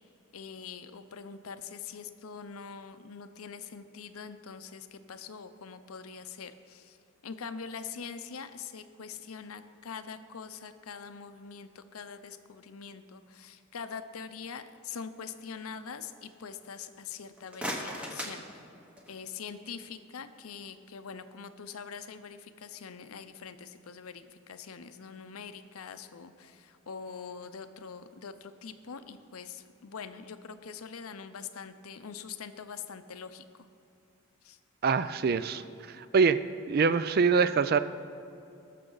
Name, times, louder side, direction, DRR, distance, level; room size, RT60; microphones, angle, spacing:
voice 1, 0.3-7.0 7.2-18.6 19.1-33.4 34.4-34.6, left 6 dB, 85° left, 10 dB, 0.6 m, -43 dB
sound 1, 17.2-19.3, equal, 5° right, 1.0 m, -39 dB
voice 2, 34.8-36.4 36.7-37.8, right 5 dB, 45° right, 13 dB, 0.3 m, -25 dB
19.0 x 6.6 x 3.9 m, 2.7 s
head